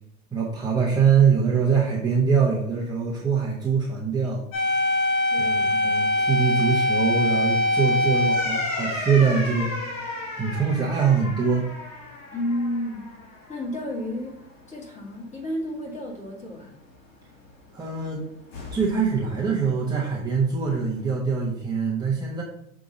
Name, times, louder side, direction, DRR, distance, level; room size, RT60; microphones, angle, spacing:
voice 1, 0.3-4.4 5.4-9.7 10.4-11.7 17.7-18.2 18.7-22.4, right 6 dB, 10° right, -5 dB, 1.0 m, -23 dB
sound 1, 4.5-13.2 13.5-13.6 18.5-19.1, left 1 dB, 60° left, 2.6 m, -25 dB
voice 2, 5.3-5.7 12.3-13.0 13.5-14.4 14.7-16.7, left 1 dB, 15° left, -3 dB, 2.2 m, -31 dB
6.7 x 3.7 x 4.1 m, 0.73 s
hypercardioid pair, 105°, 41 cm